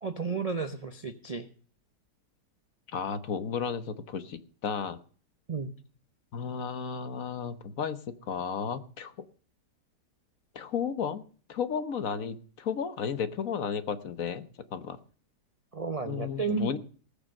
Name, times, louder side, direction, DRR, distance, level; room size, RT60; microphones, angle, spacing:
voice 1, 0.0-1.5 5.5-5.7 15.7-16.8, right 5 dB, 40° right, 9 dB, 0.5 m, -32 dB
voice 2, 2.9-5.0 6.3-9.1 10.5-11.2 11.5-15.0 16.0-16.8, left 7 dB, 60° left, 12 dB, 1.3 m, -33 dB
19.0 x 6.8 x 6.6 m, 0.42 s
omnidirectional pair, 1.8 m